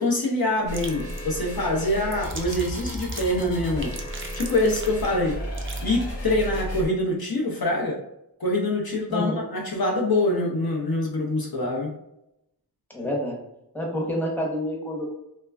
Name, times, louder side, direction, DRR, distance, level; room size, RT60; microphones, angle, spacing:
voice 1, 0.0-3.9 4.3-5.4 5.8-8.0 8.4-11.9, left 1 dB, 60° left, -1 dB, 0.6 m, -25 dB
sound 1, 0.6-5.8, right 2 dB, 30° right, 0.4 m, -40 dB
sound 2, 0.7-6.9, equal, 90° left, 1.0 m, -33 dB
voice 2, 12.9-13.4 13.7-15.1, left 1 dB, 5° left, -2 dB, 0.8 m, -28 dB
3.2 x 2.2 x 2.3 m, 0.84 s
wide cardioid pair, 50°, 42 cm